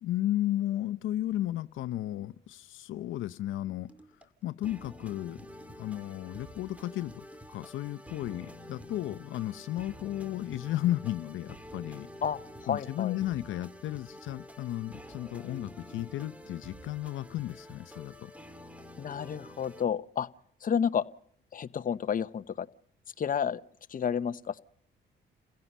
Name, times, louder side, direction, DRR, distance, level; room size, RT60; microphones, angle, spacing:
voice 1, 0.0-3.9 4.4-5.4 5.8-12.1 12.7-18.3, left 14 dB, 80° left, 14 dB, 0.7 m, -34 dB
sound 1, 3.9-19.8, left 1 dB, 5° right, 2.4 m, -48 dB
voice 2, 12.2-13.2 19.0-20.3 20.6-21.0 21.5-22.7 23.2-23.6 23.9-24.6, left 7 dB, 45° left, 13 dB, 0.9 m, -31 dB
29.5 x 16.5 x 5.5 m, 0.65 s
cardioid pair, 90°, 20 cm